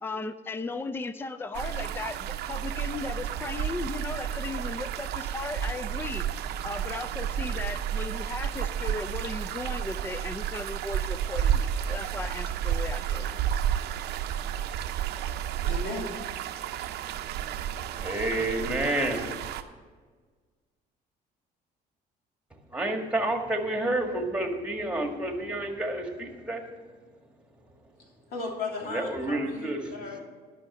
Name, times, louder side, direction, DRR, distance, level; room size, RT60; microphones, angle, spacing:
voice 1, 0.0-6.3 6.6-13.3, left 3 dB, 15° left, 12 dB, 0.5 m, -36 dB
sound 1, 1.5-19.6, right 9 dB, 75° right, 0.7 m, -31 dB
voice 2, 15.6-16.2 28.3-30.2, left 3 dB, 65° left, -1 dB, 3.1 m, -36 dB
voice 3, 17.9-19.3 22.7-26.7 28.8-30.2, right 1 dB, 5° right, 3 dB, 1.7 m, -29 dB
11.5 x 5.8 x 7.1 m, 1.5 s
cardioid pair, 110°, 17 cm